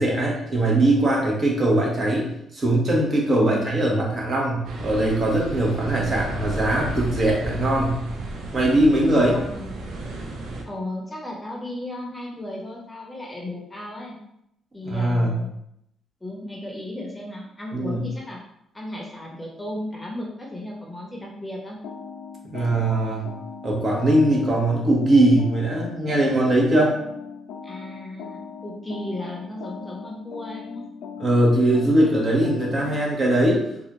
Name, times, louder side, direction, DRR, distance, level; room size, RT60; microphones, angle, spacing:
voice 1, 0.0-2.3 2.5-8.0 8.5-9.3 14.9-15.3 17.7-18.0 22.5-23.3 23.6-27.0 31.2-33.6, right 1 dB, 40° right, -3 dB, 1.3 m, -20 dB
sound 1, 4.6-10.6, right 2 dB, 75° right, 0.7 m, -33 dB
voice 2, 9.1-9.8 10.7-14.1 14.7-15.5 16.2-18.4 18.7-21.8 27.6-30.8, left 1 dB, 15° left, -1 dB, 0.8 m, -35 dB
sound 2, 21.8-33.1, left 6 dB, 80° left, 0.4 m, -39 dB
4.0 x 2.5 x 3.0 m, 0.77 s
cardioid pair, 90°, 0 cm